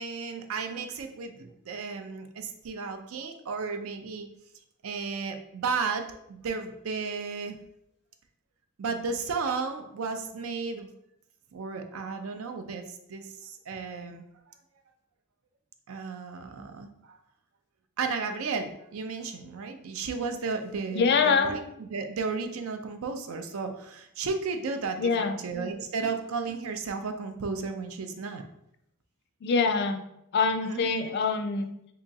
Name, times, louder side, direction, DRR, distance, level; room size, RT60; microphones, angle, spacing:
voice 1, 0.0-4.3 4.8-7.6 8.8-10.9 11.5-12.8 13.1-14.3 15.9-17.2 18.0-28.4 30.6-31.1, right 4 dB, 70° right, 7 dB, 0.4 m, -34 dB
voice 2, 20.9-21.5 25.0-25.4 29.4-30.0 30.3-31.7, left 5 dB, 50° left, 8 dB, 0.4 m, -24 dB
3.6 x 2.9 x 2.7 m, 0.77 s
head